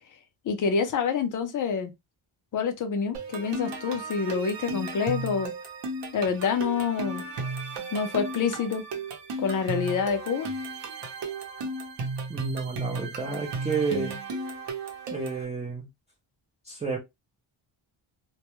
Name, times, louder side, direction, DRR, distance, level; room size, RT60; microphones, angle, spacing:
voice 1, 0.4-1.9 2.5-5.5 6.1-7.2 7.9-8.8 9.4-10.5, left 6 dB, 40° left, 0.5 m, -27 dB
sound 1, 3.1-15.4, right 3 dB, 60° right, 0.7 m, -35 dB
voice 2, 12.3-14.2 15.1-15.9 16.6-17.0, right 4 dB, 15° right, 0.4 m, -30 dB
2.2 x 2.0 x 2.9 m
wide cardioid pair, 165°, 49 cm